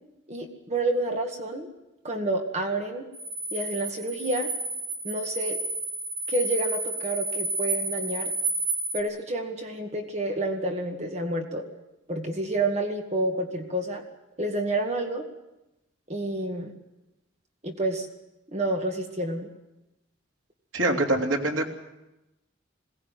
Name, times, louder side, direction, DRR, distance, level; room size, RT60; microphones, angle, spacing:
voice 1, 0.3-1.7 2.0-3.1 3.5-4.5 5.0-5.6 6.3-8.3 8.9-11.6 12.1-14.0 14.4-15.3 16.1-16.7 17.6-18.1 18.5-19.5, right 2 dB, 35° right, 3 dB, 2.0 m, -29 dB
sound 1, 3.1-9.0, right 2 dB, 15° right, 2.6 m, -31 dB
voice 2, 20.7-21.7, right 2 dB, 85° right, 1 dB, 3.3 m, -24 dB
22.0 x 17.5 x 9.2 m, 0.98 s
head